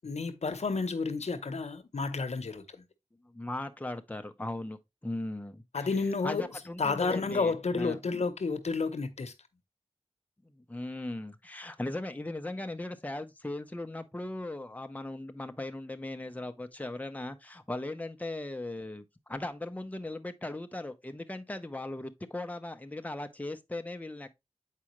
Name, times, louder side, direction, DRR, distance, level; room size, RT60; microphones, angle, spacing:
voice 1, 0.0-2.9 5.7-6.5 6.8-9.3, left 4 dB, 85° left, 0.8 m, -31 dB
voice 2, 3.2-5.9 6.2-8.0 10.4-24.3, left 2 dB, 15° left, 0.7 m, -38 dB
7.5 x 4.8 x 3.0 m
wide cardioid pair, 75°, 11 cm